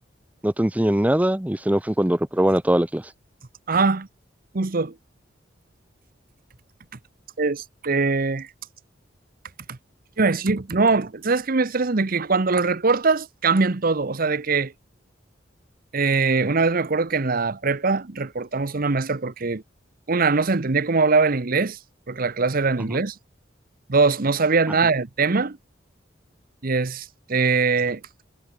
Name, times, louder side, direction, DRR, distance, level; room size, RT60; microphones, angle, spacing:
voice 1, 0.4-3.0 22.9-23.0, right 1 dB, 10° right, 0.8 m, -21 dB
voice 2, 3.7-4.1 4.5-4.9 7.4-8.5 9.7-9.8 10.2-14.7 15.9-19.6 20.1-21.8 22.1-23.1 23.9-25.6 26.6-28.0, right 4 dB, 50° right, 0.9 m, -22 dB
head